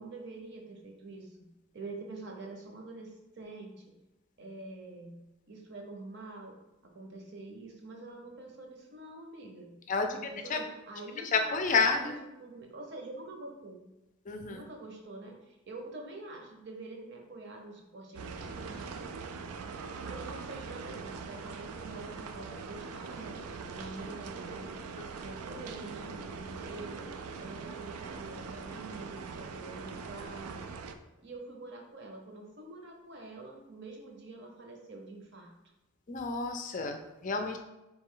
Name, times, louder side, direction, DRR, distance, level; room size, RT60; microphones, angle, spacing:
voice 1, 0.0-1.4 1.7-3.8 4.4-5.2 5.5-6.5 6.8-9.7 10.1-12.1 12.4-13.8 14.5-19.0 20.0-24.8 25.2-27.0 27.4-30.6 31.2-35.5, right 2 dB, 50° right, 1 dB, 0.8 m, -46 dB
voice 2, 9.9-10.2 10.5-10.6 11.3-12.2 14.3-14.6 36.1-37.6, left 4 dB, 35° left, 6 dB, 0.4 m, -29 dB
sound 1, 18.2-31.0, right 5 dB, 80° right, 0.4 m, -42 dB
4.1 x 3.1 x 3.7 m, 0.99 s
head